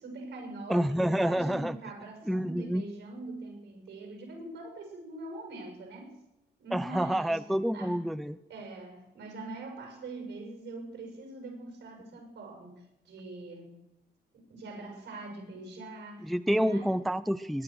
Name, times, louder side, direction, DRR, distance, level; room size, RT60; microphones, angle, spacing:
voice 1, 0.0-6.2 6.6-7.4 7.7-8.0 8.5-13.8 14.3-16.9, right 2 dB, 70° right, 3 dB, 6.8 m, -43 dB
voice 2, 0.7-1.8 2.3-2.8 6.7-8.4 16.2-17.6, equal, ahead, 14 dB, 0.5 m, -28 dB
21.0 x 9.8 x 6.2 m, 0.89 s
cardioid pair, 90°, 20 cm